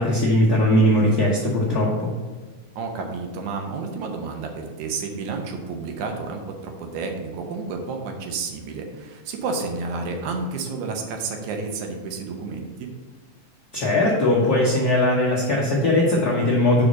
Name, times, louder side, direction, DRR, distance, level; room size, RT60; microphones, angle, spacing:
voice 1, 0.0-2.1 13.7-16.8, left 1 dB, 70° left, -5 dB, 0.9 m, -19 dB
voice 2, 2.8-12.9, right 4 dB, 85° right, 3 dB, 2.4 m, -31 dB
5.0 x 5.0 x 6.1 m, 1.3 s
omnidirectional pair, 3.3 m